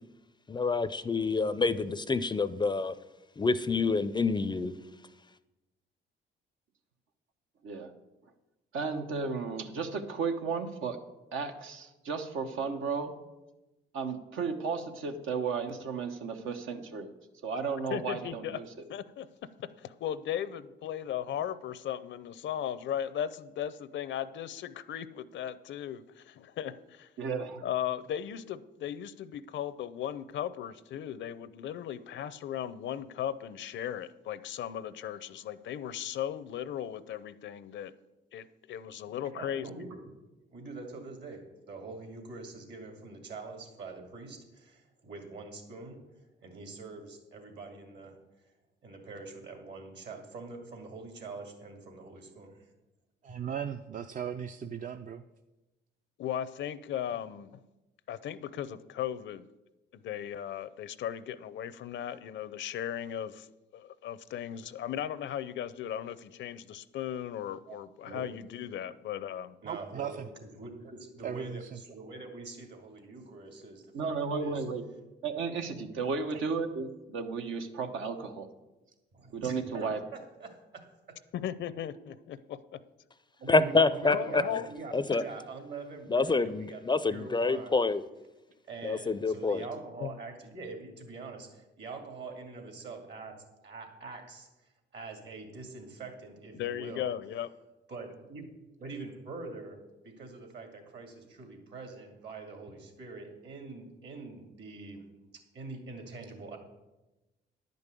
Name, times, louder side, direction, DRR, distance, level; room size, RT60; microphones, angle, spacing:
voice 1, 0.5-2.9 3.4-4.8 83.5-84.4 84.9-85.2 86.1-88.0 88.8-89.6, left 3 dB, 20° left, 14 dB, 0.4 m, -27 dB
voice 2, 8.7-11.0 11.3-13.1 13.9-17.1 17.4-18.7 27.2-27.6 73.9-74.9 75.2-78.5 79.3-80.0, right 5 dB, 80° right, 5 dB, 1.0 m, -34 dB
voice 3, 17.9-18.6 18.9-19.3 19.6-27.1 27.6-37.9 38.3-39.8 56.2-57.6 58.1-59.5 59.9-63.5 63.7-69.6 81.3-82.8 84.1-84.7 85.1-85.2 90.0-90.1 96.5-97.5, left 10 dB, 70° left, 15 dB, 0.6 m, -37 dB
voice 4, 39.3-40.0 40.5-46.0 46.4-48.2 48.8-52.6 53.3-53.4 67.7-67.8 68.0-68.3 69.6-74.6 79.1-81.2 83.4-87.8 88.7-94.5 94.9-97.1 97.9-98.5 98.8-105.1 105.3-106.6, right 3 dB, 60° right, 4 dB, 2.5 m, -44 dB
voice 5, 53.2-55.2 69.6-70.3 71.2-71.8, right 8 dB, 40° right, 8 dB, 0.5 m, -37 dB
10.5 x 5.3 x 8.3 m, 1.0 s
cardioid pair, 90°, 20 cm